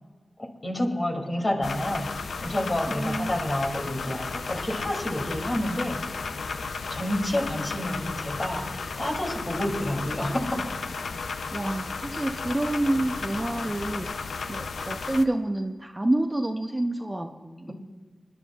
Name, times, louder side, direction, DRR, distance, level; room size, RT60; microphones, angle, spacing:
voice 1, 0.4-2.1 2.4-6.0 6.9-10.7, left 1 dB, 40° left, 0 dB, 2.8 m, -29 dB
sound 1, 1.6-15.2, left 4 dB, 85° left, 0.5 m, -34 dB
voice 2, 2.9-3.4 11.5-14.1 14.5-17.7, right 1 dB, 25° right, 5 dB, 0.8 m, -28 dB
24.5 x 11.0 x 2.4 m, 1.4 s
cardioid pair, 40°, 0 cm